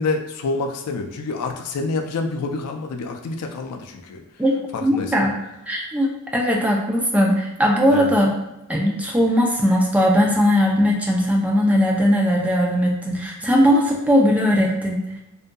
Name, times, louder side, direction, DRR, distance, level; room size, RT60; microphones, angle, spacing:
voice 1, 0.0-4.2 4.7-5.3 7.9-8.2, left 3 dB, 85° left, 4 dB, 0.4 m, -27 dB
voice 2, 4.8-5.3 5.7-8.3 8.7-15.0, equal, 5° right, -2 dB, 0.3 m, -19 dB
2.7 x 2.5 x 2.2 m, 0.94 s
head